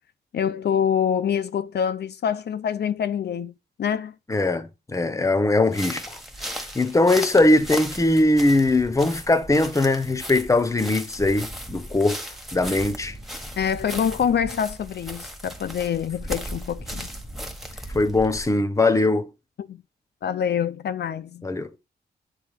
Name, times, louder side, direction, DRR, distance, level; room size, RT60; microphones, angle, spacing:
voice 1, 0.3-3.5 3.8-4.1 13.6-17.1 19.6-19.8 20.2-21.5, left 8 dB, 70° left, 0.6 m, -25 dB
voice 2, 4.3-6.2 6.7-12.2 12.5-13.1 17.9-19.3 21.4-21.8, left 2 dB, 15° left, 1.0 m, -21 dB
sound 1, 5.7-18.5, equal, ahead, 1.4 m, -36 dB
9.7 x 3.5 x 6.4 m
wide cardioid pair, 130°, 18 cm